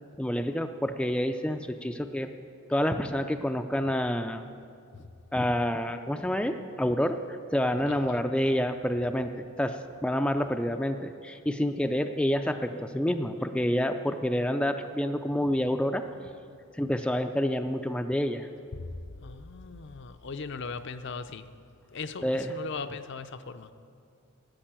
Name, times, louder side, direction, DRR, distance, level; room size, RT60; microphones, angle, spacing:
voice 1, 0.2-2.3 2.7-4.4 5.3-16.1 16.8-18.5 22.2-22.6, equal, 5° left, 6 dB, 0.3 m, -28 dB
voice 2, 19.2-21.4 21.9-23.7, left 4 dB, 55° left, 10 dB, 0.5 m, -38 dB
11.5 x 8.8 x 8.8 m, 2.4 s
head